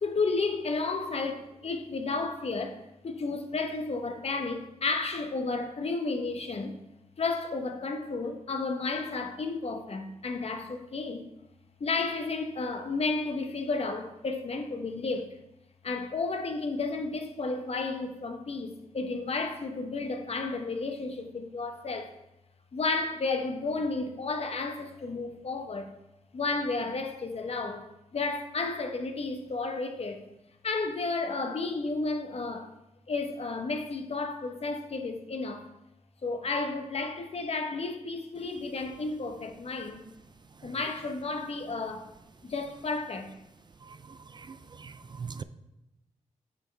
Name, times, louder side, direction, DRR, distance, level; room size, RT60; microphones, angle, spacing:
voice 1, 0.0-2.8 3.0-6.8 7.2-11.3 11.8-15.4 15.8-22.1 22.7-25.9 26.3-30.3 30.6-32.7 33.1-35.7 36.2-40.0 40.6-42.0 42.4-43.3 45.2-45.3, left 3 dB, 55° left, 1.0 m, -32 dB
voice 2, 43.9-45.4, right 5 dB, 35° right, 0.4 m, -42 dB
8.5 x 6.3 x 3.3 m
cardioid pair, 60°, 13 cm